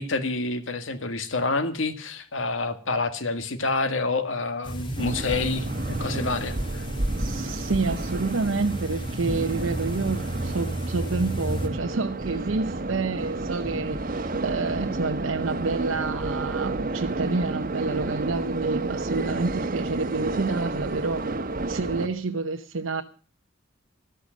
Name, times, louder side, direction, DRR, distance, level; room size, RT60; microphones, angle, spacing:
voice 1, 0.0-6.8, left 3 dB, 75° left, 1.8 m, -28 dB
sound 1, 4.6-11.7, right 1 dB, 25° left, 2.9 m, -33 dB
sound 2, 5.0-22.1, right 2 dB, 45° right, 1.1 m, -31 dB
voice 2, 7.2-21.3 21.6-23.0, right 3 dB, 80° right, 0.8 m, -29 dB
13.5 x 13.5 x 6.3 m
head